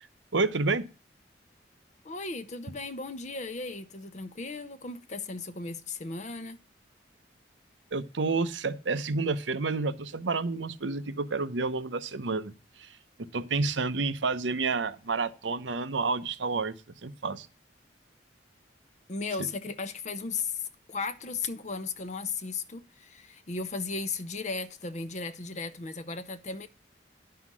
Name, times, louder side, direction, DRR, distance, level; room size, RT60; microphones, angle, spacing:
voice 1, 0.3-0.9 7.9-12.5 12.8-12.9 13.3-16.7 17.0-17.5, right 3 dB, 90° right, 0.8 m, -29 dB
voice 2, 2.0-6.6 19.1-26.7, left 4 dB, 40° left, 0.7 m, -36 dB
11.0 x 5.8 x 6.0 m
head